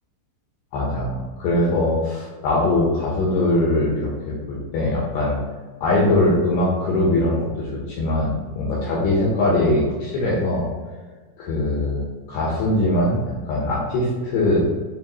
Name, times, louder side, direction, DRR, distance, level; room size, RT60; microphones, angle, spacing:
voice 1, 0.7-5.4 5.8-10.7 11.4-14.7, left 1 dB, 75° left, -5 dB, 2.5 m, -21 dB
9.3 x 3.3 x 3.1 m, 1.4 s
omnidirectional pair, 5.9 m